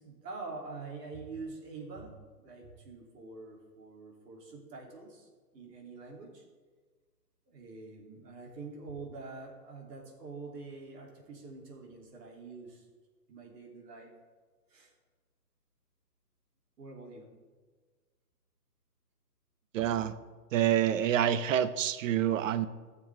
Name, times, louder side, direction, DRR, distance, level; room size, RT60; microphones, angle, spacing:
voice 1, 0.0-6.4 7.5-12.9 13.3-14.1 14.7-14.9 16.8-17.3, right 3 dB, 80° right, -1 dB, 3.3 m, -45 dB
voice 2, 19.7-20.1 20.5-22.7, right 10 dB, 50° right, 14 dB, 0.7 m, -27 dB
13.5 x 7.0 x 3.6 m, 1.4 s
hypercardioid pair, 160°, 49 cm